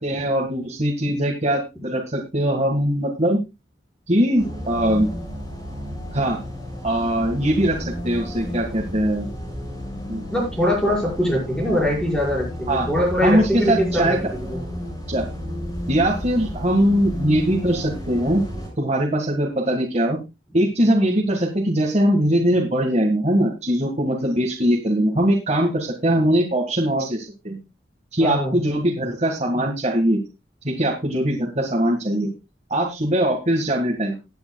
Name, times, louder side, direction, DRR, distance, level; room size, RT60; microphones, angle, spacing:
voice 1, 0.0-3.4 4.1-5.1 6.1-6.4 6.8-9.3 10.1-10.2 12.7-12.9 13.2-14.2 15.1-15.2 15.9-18.4 18.8-20.2 20.5-27.6 28.1-30.2 30.6-32.3 32.7-34.1, right 1 dB, 40° right, 0 dB, 1.8 m, -21 dB
sound 1, 4.4-18.7, equal, 20° left, 6.5 m, -32 dB
voice 2, 10.3-14.6 28.2-28.6, equal, 5° left, -2 dB, 5.3 m, -22 dB
20.0 x 9.1 x 2.3 m, 0.25 s
head